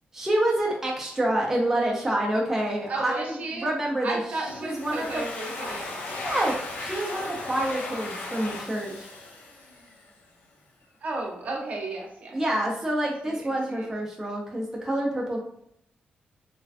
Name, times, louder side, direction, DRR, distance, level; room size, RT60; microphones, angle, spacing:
voice 1, 0.1-4.2 4.6-5.2 6.2-9.1 12.3-15.4, right 1 dB, 10° right, -3 dB, 0.5 m, -27 dB
voice 2, 2.9-3.7 4.0-5.9 11.0-12.4 13.0-13.9, right 2 dB, 50° right, 0 dB, 0.6 m, -34 dB
Domestic sounds home sounds, 4.5-10.1, left 2 dB, 85° left, 0.6 m, -36 dB
3.2 x 2.2 x 2.4 m, 0.72 s
wide cardioid pair, 140°, 3 cm